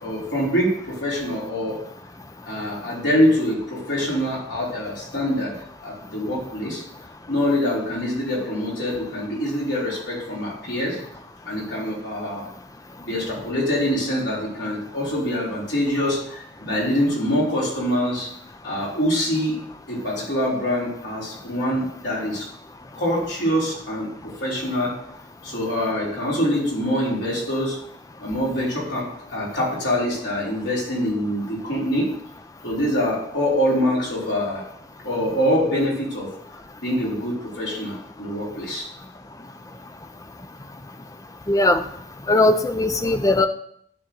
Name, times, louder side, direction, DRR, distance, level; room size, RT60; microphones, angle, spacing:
voice 1, 0.0-1.8 2.5-5.5 5.8-6.8 7.3-11.0 11.5-12.5 13.1-18.3 18.6-19.6 19.9-22.5 22.9-24.9 25.4-27.8 28.2-32.1 32.6-34.6 35.0-36.3 36.8-38.9, equal, 70° left, -5 dB, 3.7 m, -24 dB
voice 2, 41.5-41.8 42.3-43.5, left 2 dB, 20° left, 9 dB, 0.5 m, -18 dB
10.5 x 3.7 x 6.7 m, 0.70 s
head